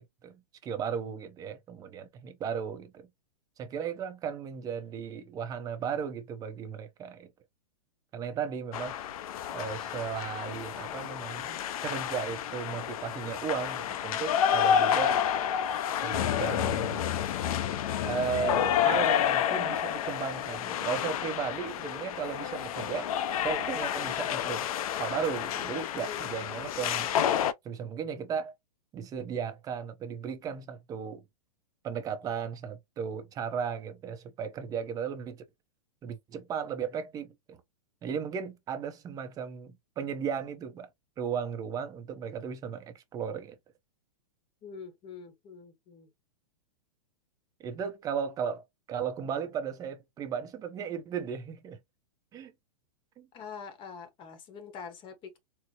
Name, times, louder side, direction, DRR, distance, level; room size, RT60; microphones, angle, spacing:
voice 1, 0.0-3.1 3.6-7.3 8.1-9.0 9.5-15.2 16.0-17.1 18.0-23.1 23.4-24.7 24.9-27.1 27.6-28.5 28.9-31.2 31.8-35.4 36.0-37.6 38.0-40.9 41.2-43.6 47.6-51.8 52.3-52.5 53.2-53.3, right 7 dB, 20° right, 0.6 m, -35 dB
sound 1, 8.7-27.5, left 9 dB, 65° left, 0.5 m, -30 dB
voice 2, 44.6-46.1 53.3-55.4, left 6 dB, 25° left, 0.8 m, -45 dB
4.4 x 2.0 x 2.7 m
hypercardioid pair, 145°, 20 cm